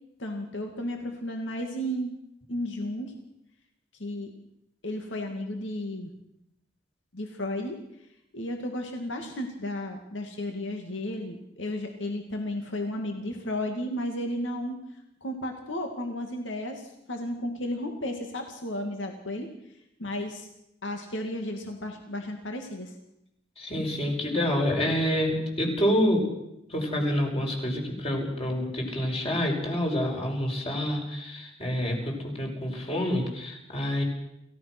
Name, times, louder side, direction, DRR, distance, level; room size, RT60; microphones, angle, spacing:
voice 1, 0.2-2.2 2.5-3.1 4.0-4.3 4.8-6.1 7.1-7.8 8.3-14.8 15.2-19.5 20.0-20.5 20.8-22.9, left 1 dB, 70° left, 4 dB, 2.5 m, -33 dB
voice 2, 23.6-26.2 26.7-34.0, equal, 30° left, 1 dB, 5.8 m, -27 dB
28.5 x 16.0 x 6.2 m, 0.83 s
head